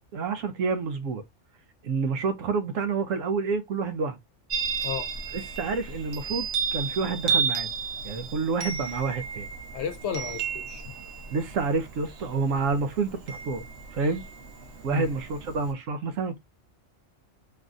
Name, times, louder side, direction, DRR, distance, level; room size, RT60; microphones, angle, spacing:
voice 1, 0.1-1.2 1.8-4.2 5.3-6.5 6.7-7.7 8.0-9.5 11.3-13.6 13.9-14.2 14.8-16.4, right 4 dB, 80° right, 1.1 m, -28 dB
Chime, 4.5-15.7, right 6 dB, 60° right, 1.0 m, -33 dB
voice 2, 9.7-10.9 14.9-15.1, left 8 dB, 65° left, 0.8 m, -33 dB
3.3 x 2.5 x 2.4 m
omnidirectional pair, 1.3 m